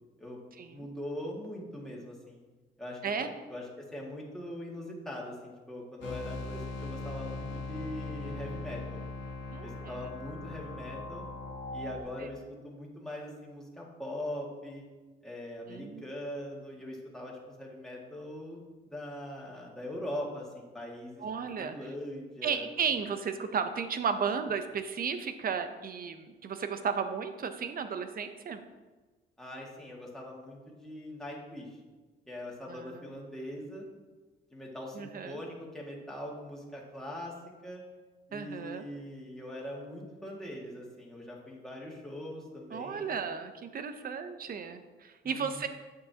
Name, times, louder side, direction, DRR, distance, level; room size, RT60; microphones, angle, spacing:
voice 1, 0.7-2.4 2.8-9.0 9.6-11.3 11.7-14.9 15.2-18.6 18.9-21.2 21.6-22.7 29.4-31.8 32.3-33.9 34.5-37.3 37.6-37.8 38.3-43.2 45.2-45.7, left 1 dB, ahead, -4 dB, 2.0 m, -41 dB
sound 1, 6.0-12.0, left 3 dB, 70° left, 1.5 m, -39 dB
voice 2, 9.5-9.9 15.7-16.0 21.2-21.8 22.4-28.6 32.7-33.0 35.0-35.4 38.3-38.8 42.7-45.7, right 6 dB, 45° right, 9 dB, 0.7 m, -34 dB
8.8 x 6.7 x 2.9 m, 1.3 s
cardioid pair, 90°, 20 cm